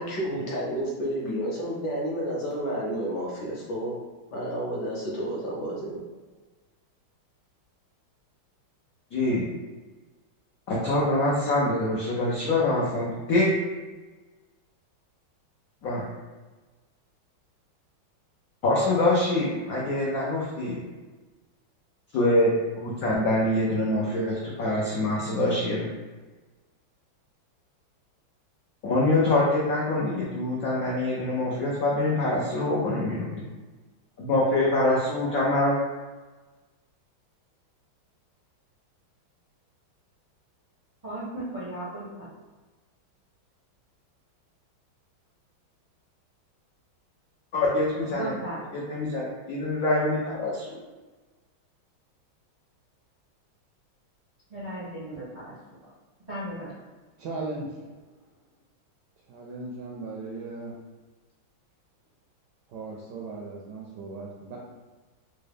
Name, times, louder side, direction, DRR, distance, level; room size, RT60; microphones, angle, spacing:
voice 1, 0.0-3.9 4.3-6.0, equal, 60° left, -5 dB, 1.3 m, -30 dB
voice 2, 9.1-9.5 10.7-13.5 15.8-16.0 18.6-20.8 22.1-25.9 28.8-33.3 34.2-35.8 47.5-48.3 48.7-50.7, left 2 dB, 85° left, -5 dB, 0.7 m, -25 dB
voice 3, 41.0-42.3 48.1-48.6 54.5-55.5 55.8-55.9 56.3-56.7, right 1 dB, 40° right, -9 dB, 0.5 m, -36 dB
voice 4, 57.2-57.7 59.3-60.7 62.7-64.6, right 3 dB, 75° right, -3 dB, 1.0 m, -37 dB
3.7 x 2.2 x 3.4 m, 1.3 s
omnidirectional pair, 2.3 m